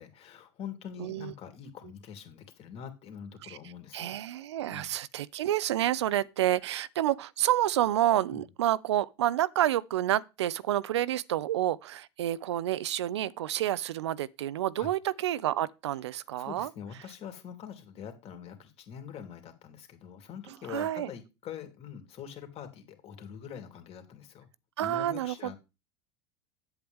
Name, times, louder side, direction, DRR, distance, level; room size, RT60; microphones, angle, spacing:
voice 1, 0.0-4.1 4.7-4.9 8.3-8.5 14.8-14.9 16.4-24.5 24.8-25.6, left 8 dB, 45° left, 2.5 m, -44 dB
voice 2, 1.0-1.3 3.4-3.6 3.9-16.7 20.7-21.1 24.8-25.5, right 13 dB, 85° right, 0.5 m, -29 dB
8.7 x 7.9 x 3.5 m
hypercardioid pair, 90°, 14 cm